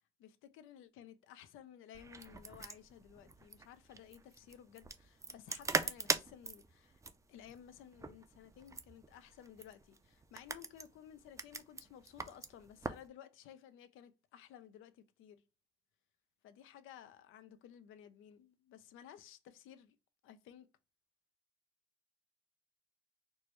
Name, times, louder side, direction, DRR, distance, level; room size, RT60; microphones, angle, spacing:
voice 1, 0.2-7.0 7.3-15.4 16.4-20.0 20.2-20.7, left 10 dB, 85° left, 0.5 m, -56 dB
sound 1, 1.9-13.1, right 3 dB, 15° right, 0.4 m, -42 dB
4.5 x 2.1 x 3.1 m
cardioid pair, 90°, 20 cm